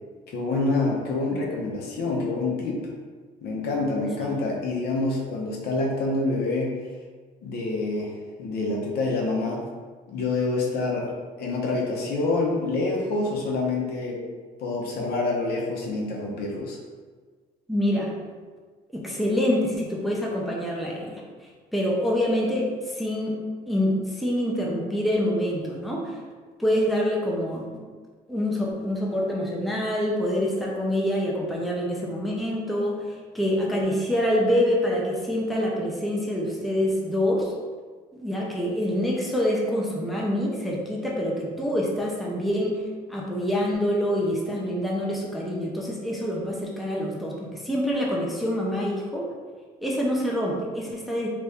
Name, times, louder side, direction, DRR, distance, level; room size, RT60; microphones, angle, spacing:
voice 1, 0.3-2.8 3.4-6.7 7.4-9.6 10.1-14.2 14.6-16.8, left 3 dB, 70° left, -2 dB, 0.8 m, -27 dB
voice 2, 17.7-18.2 18.9-21.2 21.7-26.2 26.6-27.8 28.3-33.0 33.3-37.5 38.1-42.8 43.1-49.2 49.8-51.3, equal, ahead, -4 dB, 0.6 m, -26 dB
3.0 x 2.6 x 3.4 m, 1.5 s
cardioid pair, 110°, 17 cm